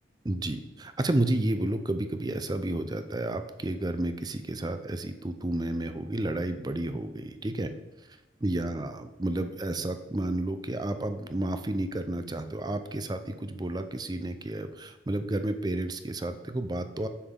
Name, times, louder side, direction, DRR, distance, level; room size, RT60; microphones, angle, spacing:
voice 1, 0.2-7.7 8.4-17.1, right 1 dB, 25° right, 9 dB, 0.5 m, -31 dB
7.0 x 6.9 x 3.7 m, 1.0 s
head